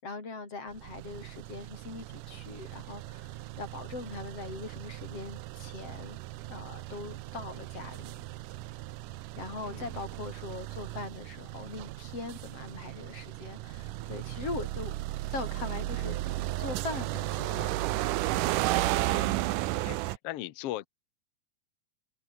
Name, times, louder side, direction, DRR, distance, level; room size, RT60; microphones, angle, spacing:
voice 1, 0.0-6.2 6.5-8.2 9.4-14.9 15.3-16.2 16.6-17.8, left 3 dB, 45° left, 6.7 m, -41 dB
sound 1, 0.7-20.2, right 17 dB, 80° right, 2.3 m, -35 dB
voice 2, 18.9-19.4 19.8-20.9, left 14 dB, 80° left, 1.3 m, -39 dB
omnidirectional pair, 3.9 m